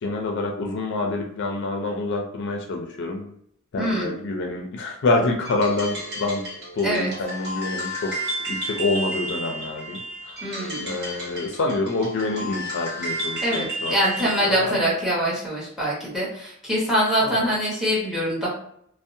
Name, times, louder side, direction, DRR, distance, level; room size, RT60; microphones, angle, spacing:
voice 1, 0.0-3.3 3.7-6.5 6.7-8.1 8.5-10.5 10.8-14.0 14.4-14.8 17.2-17.5, left 2 dB, 60° left, 2 dB, 0.4 m, -27 dB
voice 2, 3.8-4.2 6.8-7.1 10.4-10.9 13.4-18.5, equal, ahead, -6 dB, 1.0 m, -24 dB
sound 1, 5.4-14.5, equal, 55° right, 1.1 m, -32 dB
2.6 x 2.0 x 2.6 m, 0.68 s
head